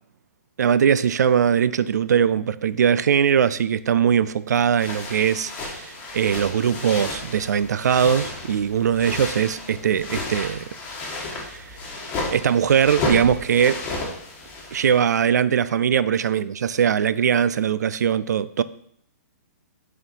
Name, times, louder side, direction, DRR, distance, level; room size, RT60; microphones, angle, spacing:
voice 1, 0.6-10.6 11.3-11.6 12.3-13.8 14.7-18.6, right 8 dB, 80° right, 0.4 m, -21 dB
sound 1, 4.8-15.0, left 2 dB, 20° left, 1.3 m, -32 dB
6.6 x 4.2 x 4.5 m
hypercardioid pair, 165°, 9 cm